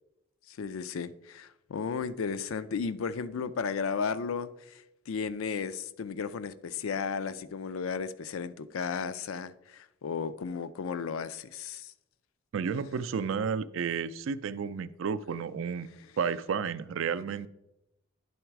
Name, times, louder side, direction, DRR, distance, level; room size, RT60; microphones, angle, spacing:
voice 1, 0.5-11.9, left 5 dB, 80° left, 0.4 m, -34 dB
voice 2, 12.5-15.9 16.2-17.5, right 6 dB, 70° right, 0.3 m, -32 dB
10.0 x 3.9 x 4.6 m
head